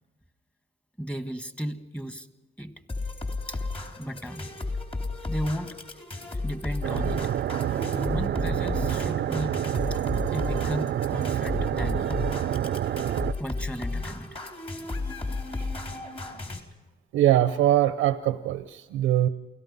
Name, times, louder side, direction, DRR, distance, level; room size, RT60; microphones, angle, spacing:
voice 1, 1.0-2.3 2.6-2.7 3.5-3.6 4.0-4.5 5.3-5.8 6.4-7.3 7.9-9.6 9.9-10.0 10.3-12.2 13.4-14.4 16.0-16.5, equal, 5° left, 9 dB, 1.6 m, -34 dB
sound 1, 2.9-16.6, left 3 dB, 30° left, 4.0 m, -34 dB
sound 2, 6.8-13.3, right 10 dB, 60° right, 0.6 m, -28 dB
voice 2, 17.1-19.3, right 12 dB, 90° right, 11 dB, 0.8 m, -22 dB
28.5 x 18.0 x 5.5 m, 1.1 s
cardioid pair, 90°, 20 cm